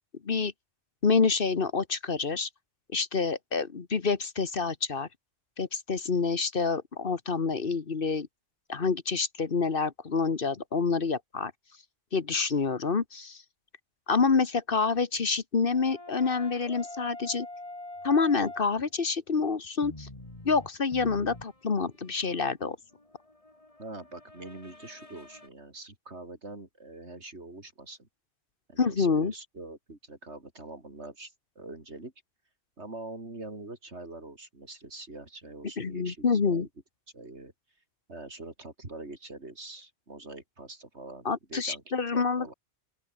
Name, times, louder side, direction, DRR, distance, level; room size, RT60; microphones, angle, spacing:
voice 1, 1.0-2.5 2.9-5.1 5.6-8.3 8.7-11.5 12.1-13.4 14.1-17.5 18.0-20.1 20.4-22.8 28.8-29.3 35.8-36.7 41.2-42.5, left 5 dB, 50° left, 1.5 m, -27 dB
sound 1, 15.7-18.9 19.6-25.5, left 2 dB, 30° left, 3.1 m, -45 dB
voice 2, 23.8-28.1 28.7-32.1 32.8-36.7 37.1-37.5 38.1-41.8 42.1-42.5, right 2 dB, 70° right, 4.6 m, -44 dB
open air
omnidirectional pair, 1.2 m